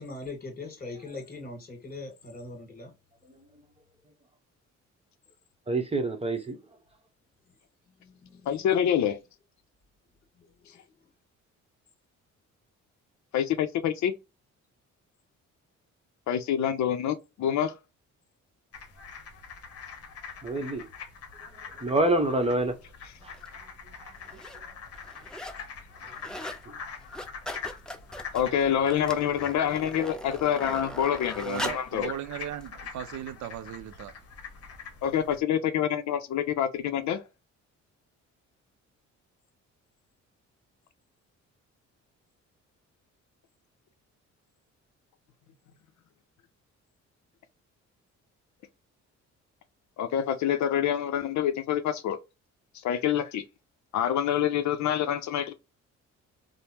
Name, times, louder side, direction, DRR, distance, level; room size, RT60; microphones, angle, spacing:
voice 1, 0.0-2.9 8.0-8.5 10.4-10.7, left 3 dB, 30° left, 1.7 m, -41 dB
voice 2, 5.7-6.6 20.4-20.8 21.7-22.8 23.2-23.3 24.0-24.1 24.5-24.7 26.7-26.8, right 2 dB, 20° right, 0.9 m, -27 dB
voice 3, 8.5-9.2 13.3-14.1 16.3-17.8 28.3-32.1 35.0-37.2 50.0-52.2 52.8-53.4 53.9-55.5, left 9 dB, 65° left, 0.5 m, -26 dB
sound 1, 18.7-35.4, left 6 dB, 50° left, 0.9 m, -44 dB
sound 2, 23.3-23.5 24.2-24.6 24.9-25.6 25.9-26.6 27.0-31.9 32.6-32.7, left 1 dB, ahead, 0.5 m, -40 dB
voice 4, 31.4-34.1, right 11 dB, 70° right, 0.5 m, -37 dB
3.3 x 2.1 x 2.8 m
cardioid pair, 90°, 30 cm